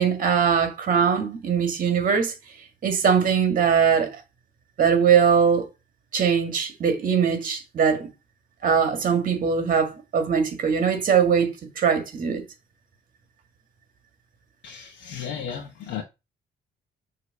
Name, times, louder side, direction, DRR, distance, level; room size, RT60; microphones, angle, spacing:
voice 1, 0.0-2.3 2.8-4.2 4.8-5.7 6.1-8.1 8.6-12.4, right 7 dB, 50° right, 1.9 m, -21 dB
voice 2, 14.6-16.0, left 7 dB, 85° left, 1.3 m, -34 dB
6.8 x 3.1 x 5.4 m
cardioid pair, 135°, 19 cm